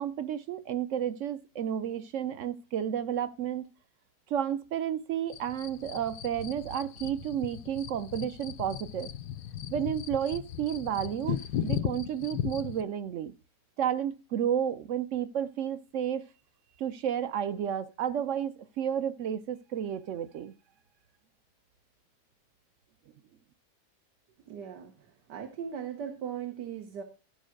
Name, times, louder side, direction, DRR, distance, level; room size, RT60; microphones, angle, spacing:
voice 1, 0.0-3.7 4.3-9.1 9.7-13.3 13.8-16.3 16.8-20.5, right 9 dB, 60° right, 0.8 m, -32 dB
sound 1, 5.3-12.8, left 10 dB, 75° left, 1.2 m, -37 dB
voice 2, 24.5-27.0, right 8 dB, 85° right, 1.7 m, -39 dB
13.5 x 4.6 x 6.4 m
omnidirectional pair, 1.8 m